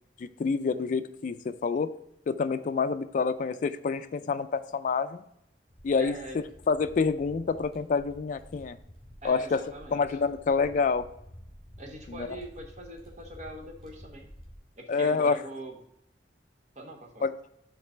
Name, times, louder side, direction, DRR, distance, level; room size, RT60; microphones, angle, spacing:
voice 1, 0.2-1.9 2.3-5.2 5.8-8.8 9.2-9.6 9.9-11.1 12.1-12.3 14.9-15.4 17.2-17.3, left 5 dB, 45° left, 10 dB, 0.3 m, -27 dB
sound 1, 5.7-14.6, equal, ahead, 2.9 m, -51 dB
voice 2, 6.0-6.4 9.2-10.2 11.8-14.3 14.8-15.8 16.8-17.2, right 1 dB, 40° right, 2 dB, 0.9 m, -42 dB
6.5 x 4.0 x 5.5 m, 0.75 s
head